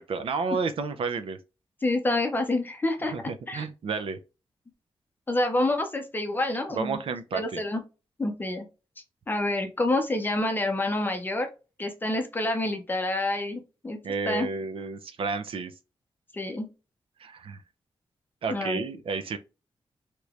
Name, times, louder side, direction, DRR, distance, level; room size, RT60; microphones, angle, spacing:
voice 1, 0.0-1.4 3.1-4.2 6.7-7.6 14.0-15.7 17.2-17.6 18.4-19.4, right 4 dB, 70° right, 0.5 m, -31 dB
voice 2, 1.8-3.1 3.5-3.7 5.3-7.0 7.3-7.8 8.2-8.7 9.3-11.5 11.8-14.0 14.3-14.5 16.3-16.7 18.5-18.8, left 2 dB, 20° left, 0.6 m, -27 dB
3.1 x 2.9 x 2.4 m
wide cardioid pair, 145°, 10 cm